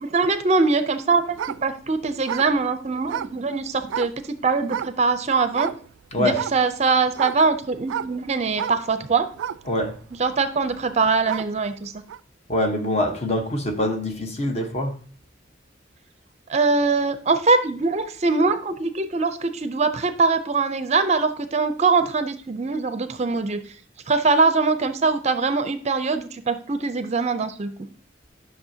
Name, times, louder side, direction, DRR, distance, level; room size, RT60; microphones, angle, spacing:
voice 1, 0.0-5.7 6.2-9.3 10.2-11.9 16.5-23.6 24.1-27.7, right 4 dB, 35° right, 0.5 m, -22 dB
sound 1, 1.3-4.2 4.7-5.2 5.5-5.9 6.3-11.6 12.1-12.2, right 9 dB, 90° right, 0.3 m, -32 dB
voice 2, 6.1-6.4 9.7-9.9 12.5-14.9, left 1 dB, 35° left, 1.1 m, -24 dB
10.5 x 6.2 x 2.8 m
head